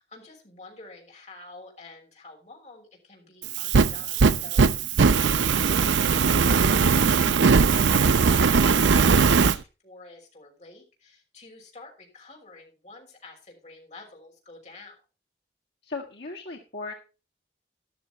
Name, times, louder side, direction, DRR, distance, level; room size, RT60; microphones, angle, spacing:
voice 1, 0.0-15.0, left 3 dB, 40° left, 0 dB, 5.8 m, -48 dB
Fire, 3.4-9.6, right 5 dB, 85° right, 0.6 m, -20 dB
voice 2, 15.8-16.9, left 3 dB, 65° left, -1 dB, 1.8 m, -36 dB
14.5 x 12.0 x 2.9 m, 0.32 s
head